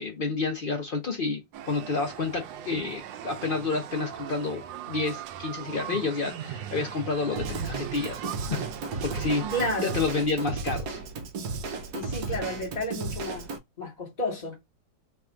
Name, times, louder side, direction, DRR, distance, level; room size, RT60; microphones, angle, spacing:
voice 1, 0.0-8.6 9.0-9.4 9.8-11.0, left 4 dB, 75° left, 0.5 m, -30 dB
sound 1, 1.5-10.1, right 10 dB, 85° right, 1.3 m, -39 dB
Drum kit / Drum, 7.4-13.6, right 4 dB, 65° right, 1.1 m, -34 dB
voice 2, 9.5-10.0 11.9-14.6, left 1 dB, 25° left, 1.0 m, -32 dB
3.4 x 2.4 x 4.3 m
omnidirectional pair, 2.0 m